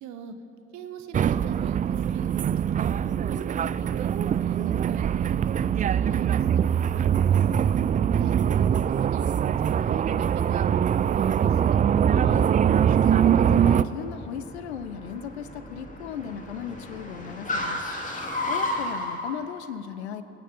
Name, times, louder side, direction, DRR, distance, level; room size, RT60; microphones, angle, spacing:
voice 1, 0.0-0.3 0.7-2.9 3.3-6.6 7.0-7.1 7.3-7.8 8.1-11.8, right 7 dB, 60° right, 8 dB, 1.2 m, -41 dB
sound 1, 1.1-13.8, right 9 dB, 25° right, 0.4 m, -23 dB
Car, 10.5-19.4, left 1 dB, 25° left, 2.6 m, -35 dB
voice 2, 12.1-12.5 12.9-17.8 18.1-18.2 18.5-20.2, left 8 dB, 85° left, 13 dB, 0.6 m, -37 dB
24.5 x 9.0 x 5.2 m, 2.9 s
hypercardioid pair, 50°, 32 cm